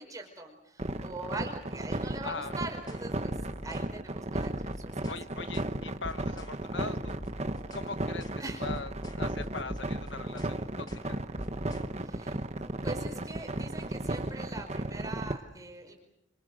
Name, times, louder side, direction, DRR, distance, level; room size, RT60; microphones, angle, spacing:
voice 1, 0.0-3.4 3.6-5.1 8.4-8.7 12.0-12.4 12.8-16.0, right 2 dB, 20° right, 3 dB, 5.1 m, -42 dB
sound 1, 0.8-15.3, right 1 dB, 35° right, 1.2 m, -34 dB
voice 2, 2.2-2.5 5.1-7.1 7.4-11.2, left 4 dB, 70° left, 10 dB, 1.4 m, -41 dB
sound 2, 2.9-3.1 3.4-3.9 4.4-5.2 5.5-5.7 6.0-6.6 7.0-7.9 8.2-8.4 8.7-10.6 10.9-11.1 11.4-11.9, equal, 20° left, 2.0 m, -43 dB
29.5 x 25.5 x 6.5 m, 0.82 s
head